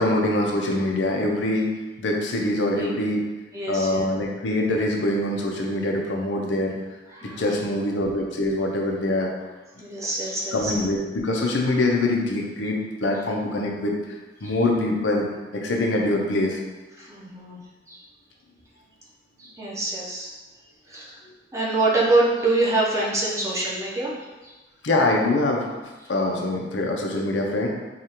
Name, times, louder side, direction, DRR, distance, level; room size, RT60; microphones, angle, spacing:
voice 1, 0.0-1.7 2.0-3.2 3.7-6.8 7.4-9.3 10.5-13.9 14.4-15.3 15.5-16.6 24.8-25.7 26.1-27.7, left 1 dB, 85° left, 0 dB, 0.6 m, -24 dB
voice 2, 3.5-4.1 7.1-7.6 9.8-10.7 14.4-14.5 17.0-17.6 17.9-18.0 19.4-20.3 20.9-21.2 21.5-24.5, right 2 dB, 15° right, -5 dB, 0.7 m, -25 dB
4.9 x 2.4 x 2.9 m, 1.2 s
head